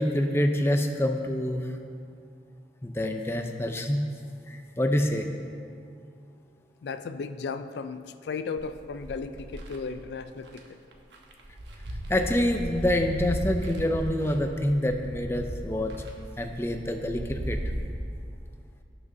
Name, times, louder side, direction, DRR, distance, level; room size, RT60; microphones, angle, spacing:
voice 1, 0.0-1.7 2.8-4.0 4.5-5.3 12.1-15.9 16.4-17.6, left 1 dB, 15° left, 5 dB, 0.5 m, -26 dB
voice 2, 6.8-10.6, left 4 dB, 70° left, 10 dB, 0.4 m, -35 dB
sound 1, 8.6-9.8 10.5-10.6 10.9-17.8, equal, 80° right, 1.1 m, -36 dB
17.0 x 6.1 x 2.7 m, 2.4 s
head